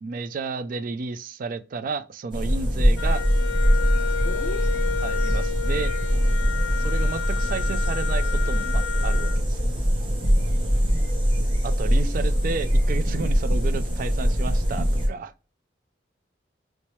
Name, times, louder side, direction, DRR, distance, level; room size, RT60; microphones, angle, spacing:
voice 1, 0.0-3.2 5.0-5.9 6.8-9.7 11.6-15.3, right 4 dB, 45° right, 0.3 m, -32 dB
sound 1, 2.3-15.1, equal, 25° right, 0.9 m, -22 dB
Wind instrument woodwind instrument, 3.0-9.4, left 8 dB, 90° left, 0.3 m, -32 dB
voice 2, 4.2-4.7 10.8-11.1 11.8-12.1, left 1 dB, 40° left, 0.6 m, -38 dB
3.1 x 3.0 x 3.0 m
head